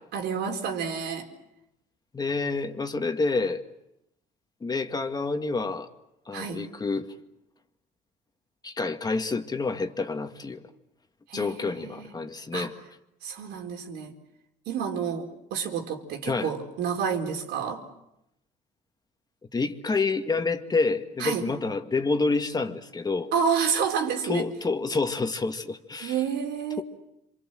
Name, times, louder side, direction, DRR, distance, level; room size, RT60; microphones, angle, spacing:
voice 1, 0.1-1.3 6.3-6.6 11.3-12.1 12.5-12.7 13.2-14.1 14.7-17.8 21.2-21.5 23.3-24.4 26.0-26.8, right 7 dB, 80° right, 4.3 m, -29 dB
voice 2, 2.1-3.6 4.6-5.9 6.3-7.1 8.6-10.6 11.3-12.7 16.2-16.5 19.5-23.3 24.3-26.1, left 3 dB, 25° left, 1.9 m, -28 dB
28.0 x 26.0 x 7.7 m
cardioid pair, 110°, 17 cm